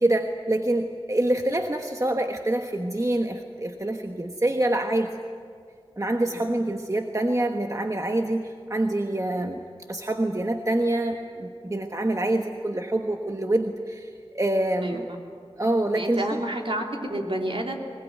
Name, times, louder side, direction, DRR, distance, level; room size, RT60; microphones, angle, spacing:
voice 1, 0.0-5.2 6.0-9.6 9.9-14.1 14.3-15.1 15.6-16.4, right 1 dB, 30° right, 4 dB, 1.3 m, -26 dB
voice 2, 14.8-15.2 15.9-17.8, right 1 dB, 60° right, 1 dB, 3.2 m, -30 dB
22.0 x 20.5 x 9.3 m, 2.2 s
wide cardioid pair, 45°, 10 cm